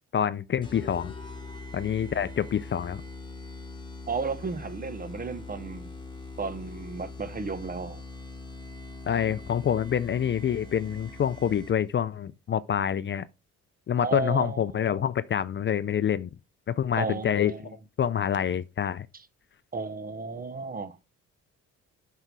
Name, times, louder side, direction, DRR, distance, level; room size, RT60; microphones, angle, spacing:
voice 1, 0.1-1.1 1.7-3.0 9.1-13.2 13.9-16.3 16.7-17.5 18.0-19.1, left 9 dB, 40° left, 0.5 m, -27 dB
sound 1, 0.6-12.0, left 3 dB, 15° left, 1.9 m, -42 dB
voice 2, 4.1-5.9 6.4-8.0 14.0-14.6 17.0-17.7 19.7-21.0, right 4 dB, 30° right, 1.0 m, -33 dB
7.8 x 5.6 x 4.7 m
cardioid pair, 90°, 30 cm